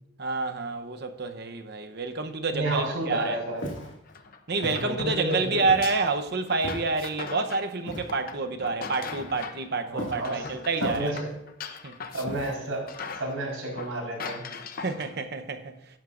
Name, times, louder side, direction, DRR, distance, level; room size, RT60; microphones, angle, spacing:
voice 1, 0.2-3.4 4.5-11.1 11.8-12.0 14.8-15.8, right 3 dB, 50° right, 0.8 m, -28 dB
voice 2, 2.5-3.8 4.7-5.7 9.9-10.5 10.8-11.3 12.1-12.8 13.2-14.4, right 1 dB, 80° right, 4.3 m, -31 dB
Walk footsteps, 3.6-3.9 4.6-4.9 5.7-6.0 6.6-7.0 7.9-8.2 9.1-9.6 10.0-10.3 10.8-11.3 12.3-12.8, left 1 dB, 65° left, 2.3 m, -37 dB
sound 1, 4.1-9.7 10.0-12.5 12.9-15.2, left 5 dB, 45° left, 0.7 m, -40 dB
15.5 x 11.0 x 2.5 m
head